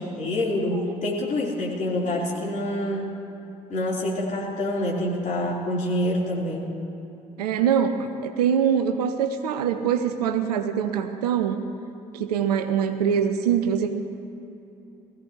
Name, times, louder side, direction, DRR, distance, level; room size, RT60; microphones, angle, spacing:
voice 1, 0.2-3.1 3.7-6.6, left 1 dB, 40° left, -5 dB, 4.0 m, -26 dB
voice 2, 7.4-11.6 12.1-13.9, right 8 dB, 75° right, 7 dB, 0.7 m, -23 dB
21.0 x 15.0 x 3.1 m, 2.9 s
figure-of-eight pair, 45°, 21 cm